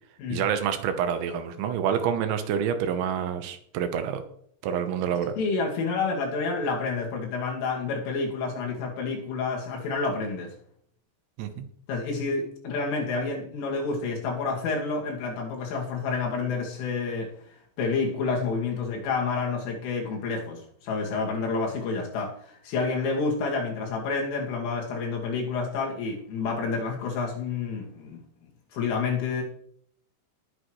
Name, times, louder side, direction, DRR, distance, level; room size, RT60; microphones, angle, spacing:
voice 1, 0.3-4.2 4.6-5.3 11.4-11.7, right 8 dB, 75° right, 8 dB, 3.2 m, -27 dB
voice 2, 5.4-10.5 11.9-17.3 17.8-28.2 28.7-29.4, left 4 dB, 80° left, 0 dB, 4.9 m, -29 dB
19.0 x 8.7 x 3.2 m, 0.65 s
omnidirectional pair, 5.7 m